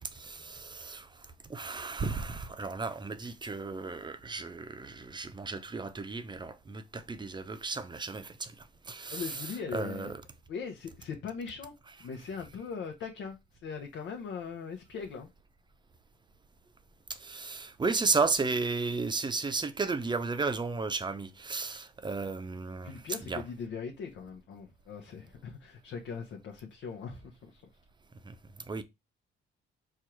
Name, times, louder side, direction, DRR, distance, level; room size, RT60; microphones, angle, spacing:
voice 1, 0.0-10.2 17.1-23.0 23.3-23.4 28.2-28.4 28.7-28.8, right 4 dB, 20° right, 0.6 m, -34 dB
voice 2, 9.1-10.1 10.5-11.7 12.0-13.4 13.6-15.3 22.8-27.6, left 6 dB, 75° left, 0.9 m, -40 dB
4.6 x 2.5 x 4.4 m
cardioid pair, 90°, 20 cm